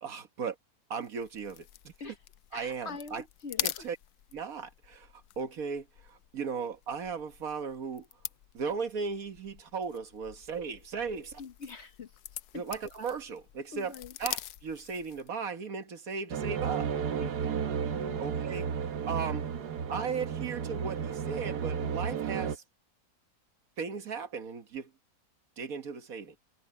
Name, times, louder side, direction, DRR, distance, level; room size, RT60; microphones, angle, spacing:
voice 1, 0.0-0.6 0.9-2.1 2.5-3.2 3.6-4.0 4.3-5.1 5.4-8.1 8.5-11.4 12.5-13.9 14.2-16.9 18.2-18.7 19.1-19.5 19.9-22.6 23.8-24.9 25.6-26.4, right 5 dB, 65° right, 1.7 m, -36 dB
sound 1, 1.0-15.4, left 13 dB, 80° left, 1.2 m, -44 dB
voice 2, 2.5-3.9 11.4-12.1 12.5-12.6 13.7-14.1 17.2-18.2, left 5 dB, 50° left, 1.1 m, -44 dB
sound 2, 16.3-22.6, right 7 dB, 85° right, 1.7 m, -33 dB
omnidirectional pair, 1.7 m